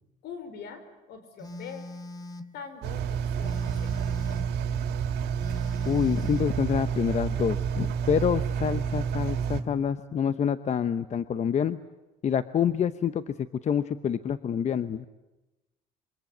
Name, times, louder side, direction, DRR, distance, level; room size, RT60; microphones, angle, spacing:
voice 1, 0.2-1.9 2.5-3.9, left 6 dB, 80° left, 10 dB, 4.6 m, -43 dB
Telephone, 1.4-2.5 3.4-4.6 5.4-6.6, left 2 dB, 25° left, 2.0 m, -41 dB
Engine, 2.8-9.6, right 7 dB, 75° right, 2.3 m, -29 dB
voice 2, 5.8-11.8 12.2-13.3 13.6-15.1, left 8 dB, 40° left, 12 dB, 0.9 m, -27 dB
26.0 x 24.0 x 9.3 m, 1.0 s
cardioid pair, 110°, 17 cm